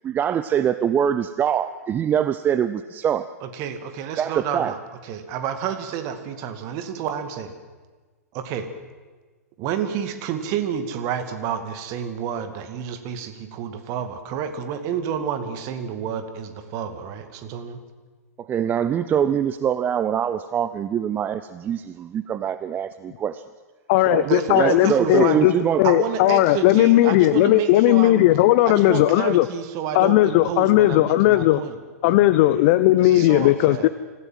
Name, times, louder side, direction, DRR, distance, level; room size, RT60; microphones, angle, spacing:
voice 1, 0.0-3.3 4.2-4.7 18.4-23.4 24.1-24.3 24.5-25.8, right 9 dB, 20° right, 13 dB, 0.6 m, -24 dB
voice 2, 3.4-4.8 5.0-7.5 8.3-8.7 9.6-17.8 24.2-25.4 25.8-28.2 28.7-32.2 33.0-33.9, right 8 dB, 40° right, 8 dB, 2.2 m, -29 dB
voice 3, 23.9-25.5 25.8-29.5 29.9-31.6 32.0-33.9, left 15 dB, 45° left, 14 dB, 0.7 m, -17 dB
25.5 x 15.5 x 7.7 m, 1.4 s
figure-of-eight pair, 105°, 9 cm